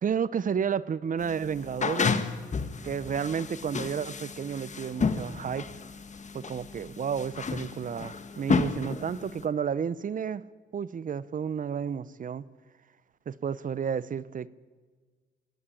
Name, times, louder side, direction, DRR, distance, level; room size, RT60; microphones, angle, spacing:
voice 1, 0.0-2.2 2.8-5.9 6.3-10.5 10.7-12.4 13.3-14.5, right 7 dB, 40° right, 18 dB, 0.8 m, -31 dB
sound 1, 1.2-9.4, left 5 dB, 35° left, 1.5 m, -32 dB
22.5 x 16.5 x 8.6 m, 1.5 s
cardioid pair, 90°, 20 cm